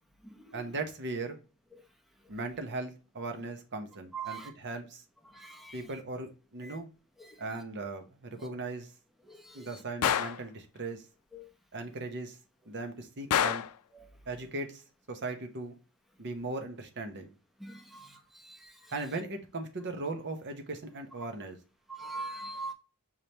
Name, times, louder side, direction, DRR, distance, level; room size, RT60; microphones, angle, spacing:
voice 1, 0.5-1.4 2.3-5.0 5.7-6.9 7.4-8.9 9.5-11.0 11.7-12.4 12.7-13.6 14.3-14.8 15.1-15.8 16.2-17.3 18.9-21.6, right 3 dB, 55° right, 0.9 m, -38 dB
voice 2, 4.1-4.5 5.3-5.7 9.3-9.6 11.3-11.5 17.6-18.1 18.4-18.6 22.0-22.7, right 3 dB, ahead, 0.7 m, -41 dB
Gunshot gunfire, 10.0-10.4 13.3-13.8, left 9 dB, 80° left, 0.4 m, -27 dB
5.7 x 3.3 x 2.8 m
head